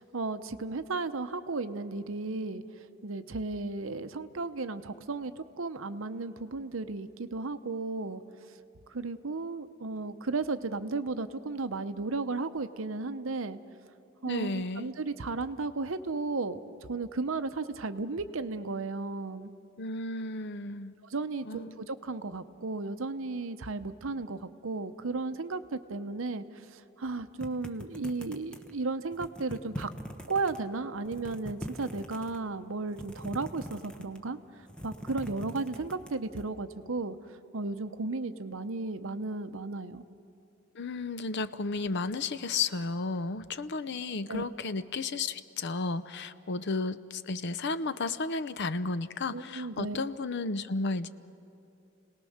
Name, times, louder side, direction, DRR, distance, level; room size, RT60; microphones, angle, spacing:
voice 1, 0.0-2.6 3.0-8.2 8.9-13.6 14.2-16.6 16.9-19.5 21.0-26.4 26.7-29.9 30.3-34.4 34.8-37.2 37.5-40.0 44.3-44.4 49.3-50.0, right 3 dB, 65° right, 11 dB, 0.8 m, -34 dB
voice 2, 14.3-14.9 19.8-21.0 21.4-21.8 40.8-51.1, left 3 dB, 55° left, 14 dB, 0.6 m, -33 dB
sound 1, 27.4-28.8 29.1-30.6 31.0-32.4 32.9-34.3 34.6-36.4, equal, 5° left, 1.1 m, -42 dB
30.0 x 18.5 x 6.5 m, 2.7 s
head